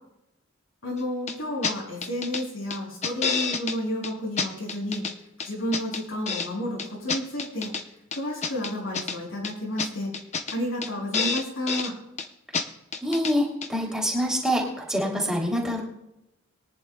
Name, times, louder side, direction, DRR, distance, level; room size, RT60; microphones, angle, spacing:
voice 1, 0.8-5.0 5.4-7.7 8.1-10.1 10.5-11.9, left 1 dB, 80° left, -1 dB, 5.7 m, -31 dB
sound 1, 1.3-1.4 1.6-1.7 2.0-2.4 2.7-3.8 4.0-4.1 4.4-5.1 5.4-6.5 6.8-7.8 8.1-9.2 9.4-9.5 9.8-9.9 10.1-10.6 10.8-10.9 11.1-11.9 12.2-12.3 12.5-12.6 12.9-13.3 13.6-13.7, left 5 dB, 35° left, 0.7 m, -29 dB
voice 2, 13.0-14.6 14.9-15.8, equal, 5° right, -3 dB, 3.1 m, -25 dB
23.0 x 10.5 x 2.3 m, 0.87 s
head